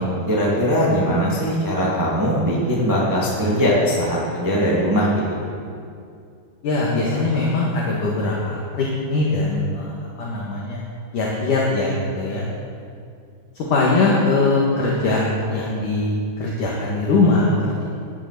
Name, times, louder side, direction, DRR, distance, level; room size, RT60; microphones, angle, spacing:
voice 1, 0.0-5.4, equal, 5° right, -6 dB, 1.7 m, -20 dB
voice 2, 6.6-10.8 11.1-12.4 13.5-15.2 15.5-17.8, left 3 dB, 55° left, -4 dB, 2.9 m, -21 dB
15.5 x 11.5 x 6.9 m, 2.3 s
omnidirectional pair, 4.9 m